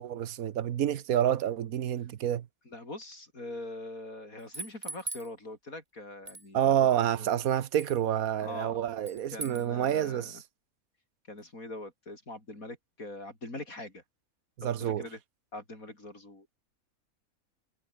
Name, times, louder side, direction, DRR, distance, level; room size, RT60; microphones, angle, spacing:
voice 1, 0.0-2.5 6.5-10.4 14.6-15.0, right 10 dB, 80° right, 1.3 m, -28 dB
voice 2, 2.7-7.3 8.4-8.8 9.3-10.4 11.3-14.0 14.6-15.2 15.5-16.5, left 2 dB, 75° left, 7.2 m, -43 dB
sound 1, 4.4-5.3 6.3-6.5 7.8-8.0 9.0-9.6, right 2 dB, 25° right, 2.7 m, -40 dB
omnidirectional pair, 1.5 m